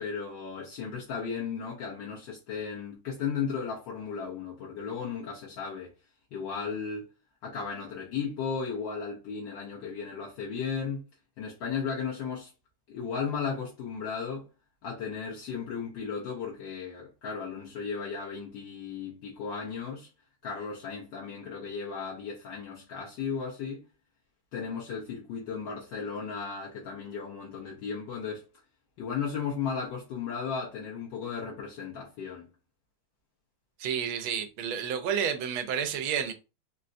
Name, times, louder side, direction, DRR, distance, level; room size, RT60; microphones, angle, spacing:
voice 1, 0.0-5.9 6.3-7.1 7.4-11.0 11.4-12.5 12.9-14.5 14.8-20.1 20.4-23.9 24.5-28.5 29.0-32.5, left 6 dB, 70° left, 1.3 m, -35 dB
voice 2, 33.8-36.3, right 8 dB, 80° right, 1.4 m, -30 dB
3.8 x 2.2 x 2.5 m
omnidirectional pair, 2.2 m